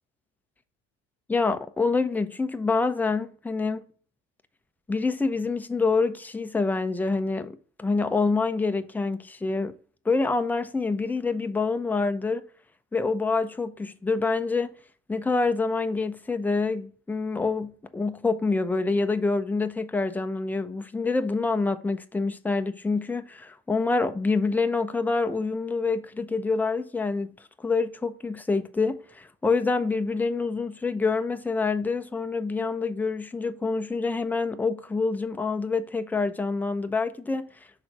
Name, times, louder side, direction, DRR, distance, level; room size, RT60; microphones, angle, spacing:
voice 1, 1.3-3.8 4.9-9.8 10.1-12.5 12.9-14.7 15.1-37.5, left 4 dB, 5° left, 0.4 m, -26 dB
5.7 x 3.9 x 5.8 m
hypercardioid pair, 80°, 41 cm